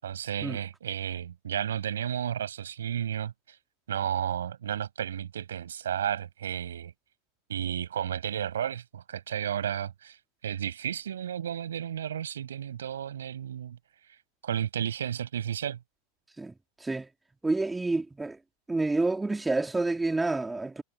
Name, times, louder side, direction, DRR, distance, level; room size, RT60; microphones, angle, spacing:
voice 1, 0.0-3.6 3.9-6.9 7.5-10.2 10.4-13.8 14.4-15.8, right 9 dB, 75° right, 5.9 m, -32 dB
voice 2, 17.4-18.4 18.7-20.8, right 2 dB, 10° right, 3.0 m, -28 dB
hypercardioid pair, 95°, 0 cm